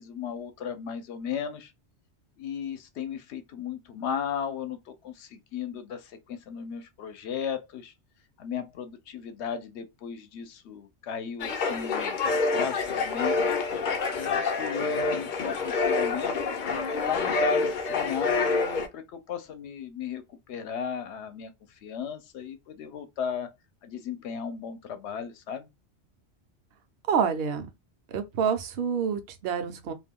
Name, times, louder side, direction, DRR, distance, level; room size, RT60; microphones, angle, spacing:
voice 1, 0.0-1.7 2.4-7.9 8.4-12.2 12.5-13.5 14.1-16.6 17.0-21.5 21.8-23.5 23.8-25.7, left 7 dB, 80° left, 0.8 m, -35 dB
sound 1, 11.4-18.9, left 4 dB, 55° left, 0.6 m, -27 dB
voice 2, 27.1-27.7 28.1-29.9, right 7 dB, 65° right, 0.8 m, -27 dB
2.4 x 2.2 x 3.4 m
omnidirectional pair, 1.1 m